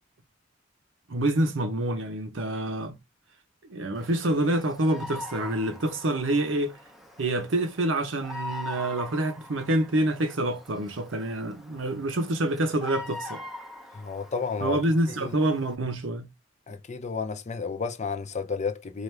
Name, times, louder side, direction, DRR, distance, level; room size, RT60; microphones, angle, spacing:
voice 1, 1.1-2.9 3.7-6.8 7.2-13.4 14.6-16.3, right 1 dB, 80° right, 0.8 m, -27 dB
Bird vocalization bird call bird song, 3.9-15.8, left 2 dB, ahead, 0.7 m, -43 dB
voice 2, 13.9-14.8 15.1-15.4 16.7-19.0, left 5 dB, 40° left, 0.6 m, -32 dB
4.6 x 2.5 x 3.2 m
head